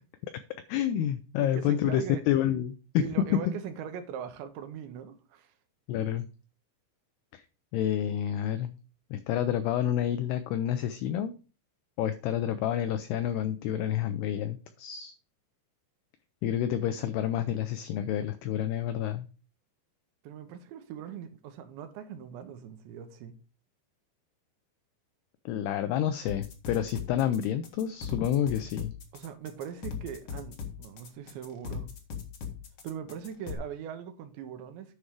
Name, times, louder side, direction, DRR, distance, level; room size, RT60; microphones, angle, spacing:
voice 1, 0.7-3.1 5.9-6.3 7.3-7.4 7.7-8.7 9.1-11.3 12.0-15.1 16.4-19.3 25.5-28.9, left 10 dB, 90° left, 2.3 m, -29 dB
voice 2, 1.4-2.2 3.0-5.5 20.2-23.4 29.1-31.9 32.8-35.0, right 8 dB, 80° right, 3.2 m, -41 dB
sound 1, 26.3-33.5, left 6 dB, 70° left, 1.4 m, -39 dB
10.0 x 5.5 x 4.6 m
omnidirectional pair, 5.4 m